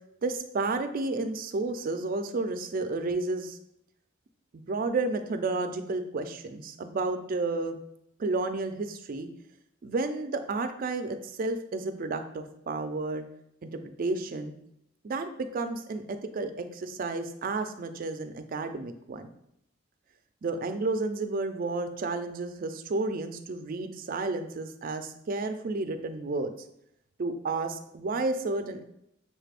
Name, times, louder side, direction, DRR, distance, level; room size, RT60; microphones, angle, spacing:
voice 1, 0.2-3.6 4.5-7.8 8.2-9.3 9.8-13.2 13.6-14.5 15.0-19.3 20.4-26.5 27.2-28.8, right 3 dB, 45° right, 7 dB, 0.4 m, -31 dB
6.3 x 2.4 x 3.4 m, 0.78 s
head